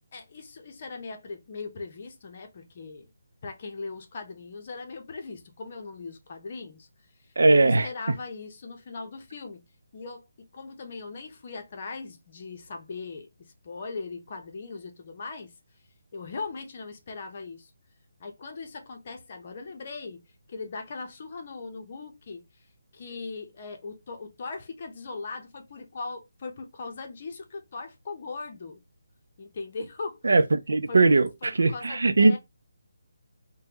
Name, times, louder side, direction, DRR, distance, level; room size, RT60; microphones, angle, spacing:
voice 1, 0.1-3.1 3.4-6.9 7.5-9.6 9.9-15.5 16.1-17.7 18.2-20.2 20.5-22.4 22.9-28.8 29.4-30.2 30.9-31.1 31.4-32.4, left 4 dB, 45° left, 0.8 m, -39 dB
voice 2, 7.4-7.9 30.2-32.4, right 3 dB, 75° right, 0.5 m, -20 dB
3.3 x 2.2 x 2.9 m
figure-of-eight pair, 155°, 0 cm